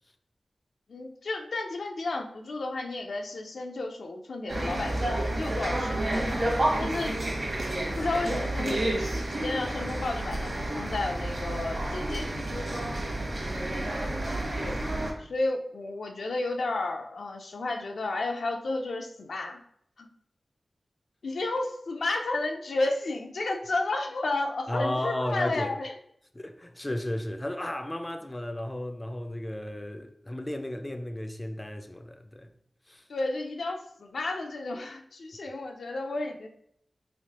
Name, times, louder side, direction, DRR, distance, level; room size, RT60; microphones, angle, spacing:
voice 1, 0.9-6.4 6.8-7.2 8.0-12.6 14.5-14.8 15.2-19.6 20.0-20.1 21.2-25.9 33.1-36.5, left 2 dB, 90° left, 0.5 m, -32 dB
sound 1, 4.5-15.1, right 1 dB, 50° right, 0.9 m, -30 dB
voice 2, 13.1-13.8 14.3-14.4 24.7-25.7 26.3-32.5 32.9-33.1, left 1 dB, 15° left, 0.3 m, -34 dB
3.6 x 3.1 x 2.8 m
wide cardioid pair, 105°, 0 cm